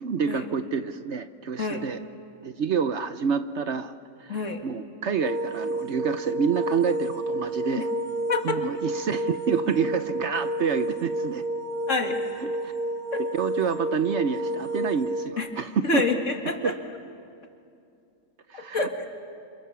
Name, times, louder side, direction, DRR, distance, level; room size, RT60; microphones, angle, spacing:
voice 1, 0.0-2.0 2.4-3.9 4.2-7.9 8.4-11.4 12.4-12.7 13.3-16.0 16.6-16.7 18.5-18.8, right 6 dB, 55° right, 10 dB, 1.0 m, -28 dB
voice 2, 4.3-4.6 8.3-8.6 11.9-12.2 13.1-13.2 15.4-15.5 15.8-16.7 18.5-19.1, left 3 dB, 55° left, 3 dB, 2.5 m, -27 dB
sound 1, 5.2-15.3, right 1 dB, 30° left, 2.1 m, -30 dB
30.0 x 27.0 x 7.0 m, 2.4 s
omnidirectional pair, 1.5 m